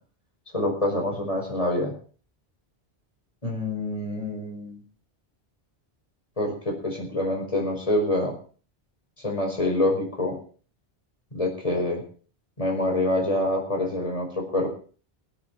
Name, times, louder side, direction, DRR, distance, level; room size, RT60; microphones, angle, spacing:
voice 1, 0.5-1.9 3.4-4.8 6.4-8.3 9.2-10.4 11.3-12.0 12.6-14.7, left 1 dB, 30° left, 1 dB, 5.2 m, -26 dB
21.5 x 8.6 x 4.7 m, 0.41 s
omnidirectional pair, 1.1 m